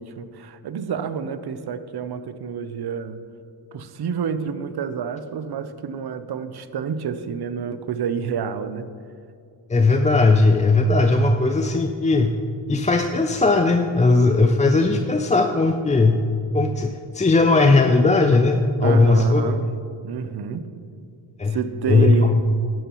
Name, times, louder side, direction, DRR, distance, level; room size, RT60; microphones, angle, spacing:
voice 1, 0.0-3.2 3.7-8.9 18.8-19.6 20.0-20.7 21.5-22.3, right 7 dB, 50° right, 11 dB, 0.7 m, -28 dB
voice 2, 9.7-12.3 12.7-16.2 16.5-19.4 21.4-21.6 21.9-22.2, left 3 dB, 15° left, 5 dB, 0.4 m, -18 dB
11.0 x 10.5 x 3.0 m, 2.4 s
cardioid pair, 70°, 49 cm